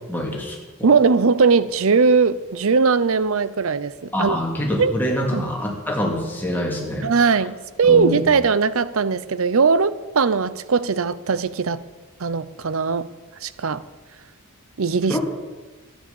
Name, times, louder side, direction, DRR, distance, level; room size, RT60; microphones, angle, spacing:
voice 1, 0.1-0.9 4.1-7.4 7.9-8.2 15.1-15.2, left 1 dB, 10° left, -1 dB, 2.6 m, -25 dB
voice 2, 0.8-4.4 4.8-4.9 5.3-5.4 7.0-11.8 12.2-13.1 13.4-13.8 14.8-15.2, right 5 dB, 65° right, 16 dB, 0.6 m, -19 dB
12.5 x 10.0 x 7.1 m, 1.3 s
head